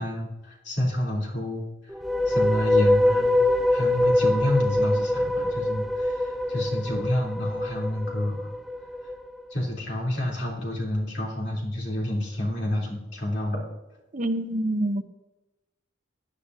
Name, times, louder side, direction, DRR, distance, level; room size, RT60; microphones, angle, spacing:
voice 1, 0.0-1.6 2.3-3.4 3.7-8.5 9.5-13.7, left 1 dB, 60° left, 3.5 m, -29 dB
sound 1, 1.9-9.2, left 1 dB, ahead, 0.4 m, -24 dB
voice 2, 14.1-15.0, right 1 dB, 40° right, 0.9 m, -26 dB
17.0 x 9.8 x 2.8 m
head